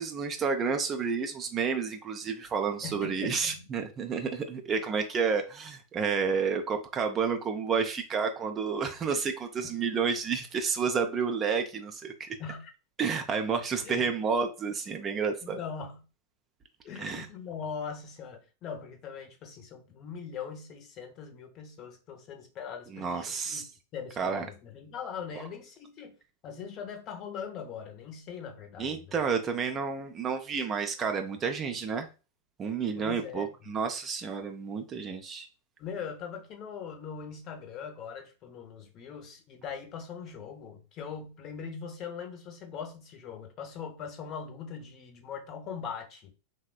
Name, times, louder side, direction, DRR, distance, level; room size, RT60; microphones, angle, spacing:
voice 1, 0.0-12.3 13.0-15.6 17.0-17.3 22.9-23.6 24.2-24.5 28.8-32.1 32.6-35.5, right 5 dB, 25° right, 0.4 m, -30 dB
voice 2, 2.8-3.6 12.4-12.7 13.8-14.1 15.4-16.0 16.8-23.6 23.9-26.2 26.4-29.2 33.0-33.7 35.8-46.3, left 6 dB, 35° left, 0.6 m, -41 dB
3.1 x 2.1 x 2.3 m
figure-of-eight pair, 90°, 0 cm